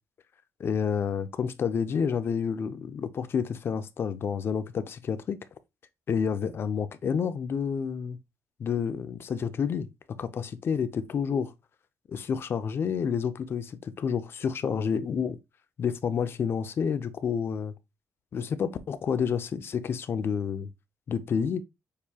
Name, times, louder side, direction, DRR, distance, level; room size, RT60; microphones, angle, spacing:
voice 1, 0.6-5.4 6.1-8.2 8.6-9.9 10.2-11.5 12.1-15.4 15.8-17.7 18.3-20.7 21.1-21.6, left 6 dB, 45° left, 0.6 m, -29 dB
6.7 x 2.7 x 2.8 m
cardioid pair, 125°, 6 cm